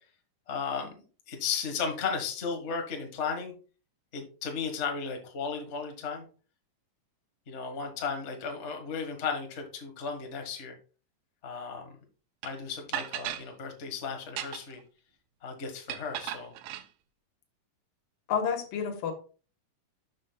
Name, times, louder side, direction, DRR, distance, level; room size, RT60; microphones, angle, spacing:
voice 1, 0.5-3.5 4.1-6.2 7.5-10.7 11.4-11.9 12.4-14.8 15.4-16.5, left 5 dB, 40° left, 3 dB, 0.9 m, -35 dB
sound 1, 12.4-12.5 12.9-13.5 14.2-14.8 15.9-16.9, right 13 dB, 85° right, 2.2 m, -36 dB
voice 2, 18.3-19.1, left 7 dB, 85° left, 6 dB, 2.9 m, -29 dB
12.0 x 6.3 x 2.3 m, 0.37 s
omnidirectional pair, 3.9 m